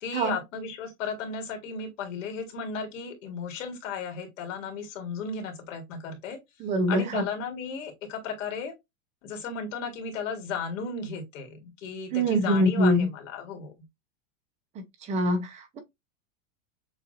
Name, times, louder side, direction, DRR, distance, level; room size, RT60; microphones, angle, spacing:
voice 1, 0.0-6.4 6.9-8.7 9.2-13.7, left 5 dB, 65° left, 1.9 m, -35 dB
voice 2, 6.6-7.3 12.1-13.1 15.1-15.8, equal, 15° right, 0.8 m, -24 dB
7.0 x 2.7 x 2.6 m
supercardioid pair, 170°, 41 cm